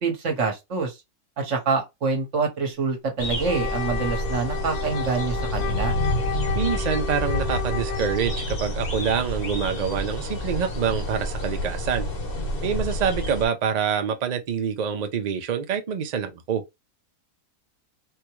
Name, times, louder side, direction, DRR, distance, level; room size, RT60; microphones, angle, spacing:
voice 1, 0.0-1.0 1.4-6.0, right 4 dB, 55° right, 1.4 m, -26 dB
sound 1, 3.2-13.5, left 1 dB, 40° left, 1.0 m, -29 dB
Wind instrument woodwind instrument, 3.4-8.6, left 8 dB, 80° left, 1.2 m, -32 dB
voice 2, 6.5-12.1 12.6-16.6, right 7 dB, 75° right, 0.3 m, -26 dB
4.3 x 2.3 x 3.0 m
omnidirectional pair, 1.6 m